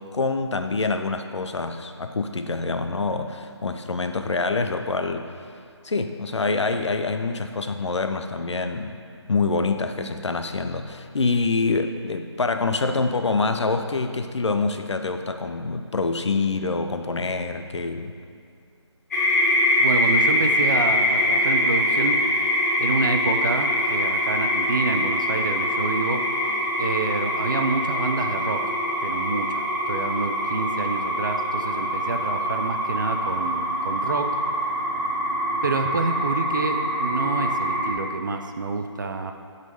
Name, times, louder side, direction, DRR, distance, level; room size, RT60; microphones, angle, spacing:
voice 1, 0.1-5.3 5.8-9.0 9.3-18.2, left 3 dB, 75° left, 7 dB, 0.6 m, -26 dB
sound 1, 19.1-37.9, equal, 35° left, 1.3 m, -24 dB
voice 2, 19.8-22.5 22.8-26.2 26.8-28.7 29.0-34.4 35.6-39.3, right 3 dB, 45° right, 6 dB, 0.5 m, -28 dB
8.1 x 4.1 x 5.4 m, 2.4 s
figure-of-eight pair, 160°, 15 cm